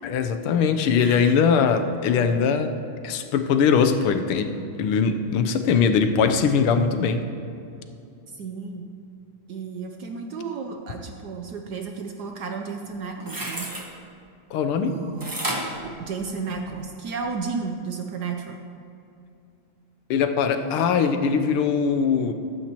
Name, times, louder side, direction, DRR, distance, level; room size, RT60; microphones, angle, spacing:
voice 1, 0.0-2.7 3.0-4.5 4.8-7.2 14.5-14.9 20.1-22.3, left 6 dB, 90° left, 7 dB, 1.6 m, -21 dB
voice 2, 1.0-1.4 8.3-8.9 9.5-13.7 14.8-15.4 15.8-18.6, right 5 dB, 70° right, 4 dB, 1.0 m, -33 dB
sound 1, 12.9-13.9 15.2-16.8 17.2-17.3, right 1 dB, 20° right, 0.6 m, -31 dB
15.0 x 12.5 x 2.9 m, 2.7 s
omnidirectional pair, 2.3 m